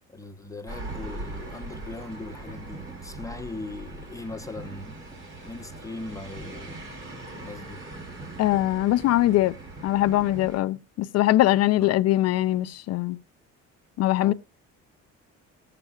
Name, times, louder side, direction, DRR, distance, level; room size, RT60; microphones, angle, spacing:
voice 1, 0.1-5.0 5.4-6.8 7.4-7.9 11.8-11.9 14.2-14.3, left 2 dB, 10° left, 0.9 m, -39 dB
sound 1, 0.7-10.5, right 3 dB, 10° right, 1.1 m, -45 dB
sound 2, 0.7-10.6, right 1 dB, 40° right, 3.8 m, -42 dB
voice 2, 8.4-9.5 9.8-13.2 14.0-14.3, left 15 dB, 55° left, 0.6 m, -22 dB
20.0 x 6.8 x 2.3 m
cardioid pair, 140°, 30 cm